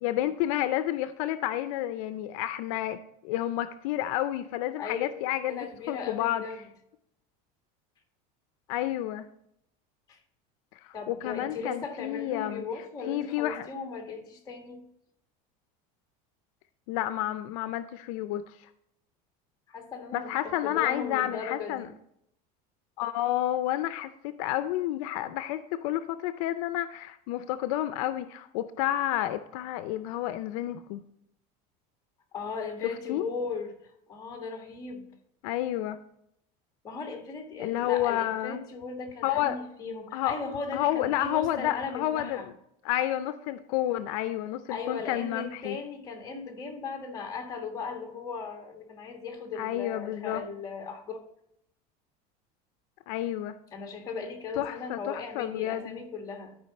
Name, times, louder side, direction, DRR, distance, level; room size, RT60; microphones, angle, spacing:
voice 1, 0.0-6.4 8.7-9.3 10.8-12.6 13.1-13.7 16.9-18.5 20.1-21.9 23.0-24.1 24.4-31.0 33.1-33.2 35.4-36.0 37.6-38.6 39.2-39.6 40.1-40.4 40.7-42.4 42.8-45.8 49.6-50.4 53.1-53.6 54.6-56.0, left 13 dB, 70° left, 11 dB, 0.5 m, -30 dB
voice 2, 5.5-6.6 10.1-10.2 10.9-14.8 19.7-21.9 32.3-33.7 34.1-35.1 36.8-42.5 44.7-51.2 53.7-56.6, left 4 dB, 20° left, 3 dB, 1.6 m, -37 dB
12.5 x 5.0 x 4.1 m, 0.76 s
cardioid pair, 170°, 19 cm